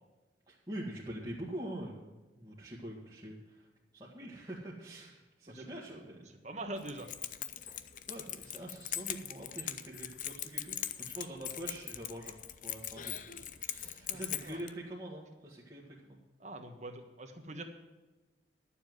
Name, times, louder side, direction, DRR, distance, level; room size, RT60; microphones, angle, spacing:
voice 1, 0.5-3.7 3.9-6.3 7.7-7.8 8.1-13.2 13.6-16.2, right 1 dB, 20° right, -6 dB, 1.7 m, -45 dB
voice 2, 5.5-7.1 14.1-14.6 16.4-17.6, right 2 dB, 40° right, 4 dB, 1.4 m, -44 dB
Keys jangling, 6.8-14.7, left 11 dB, 45° left, 0.5 m, -41 dB
11.5 x 7.2 x 7.8 m, 1.2 s
head